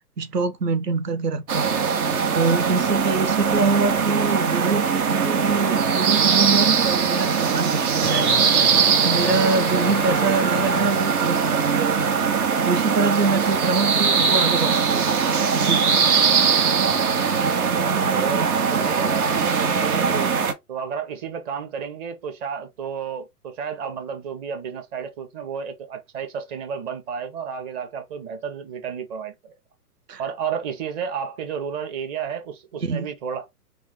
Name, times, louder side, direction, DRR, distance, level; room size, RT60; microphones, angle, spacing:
voice 1, 0.2-1.7 2.3-8.7 9.0-12.1 12.6-15.1 15.5-16.0 18.3-18.5 30.1-30.2 32.8-33.1, right 4 dB, 80° right, 0.8 m, -25 dB
sound 1, 1.5-20.5, right 6 dB, 65° right, 1.1 m, -21 dB
sound 2, 6.4-14.3 14.6-15.6 16.6-16.7 17.5-17.6 19.4-19.5, left 2 dB, 10° left, 0.4 m, -34 dB
voice 2, 17.8-29.5 30.2-33.5, right 7 dB, 30° right, 1.0 m, -32 dB
3.6 x 2.3 x 3.6 m
figure-of-eight pair, 115°, 47 cm